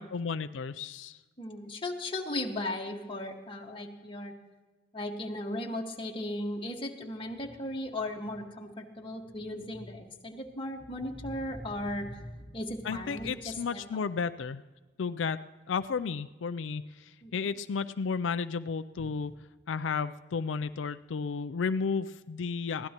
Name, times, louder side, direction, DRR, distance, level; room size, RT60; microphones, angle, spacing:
voice 1, 0.0-1.2 12.8-14.6 15.0-15.4 15.7-19.3 19.7-22.9, left 5 dB, 85° left, 11 dB, 0.4 m, -33 dB
voice 2, 1.4-4.3 4.9-13.8 17.2-17.5, left 1 dB, 30° left, 1 dB, 1.7 m, -37 dB
23.0 x 16.5 x 3.0 m, 1.3 s
head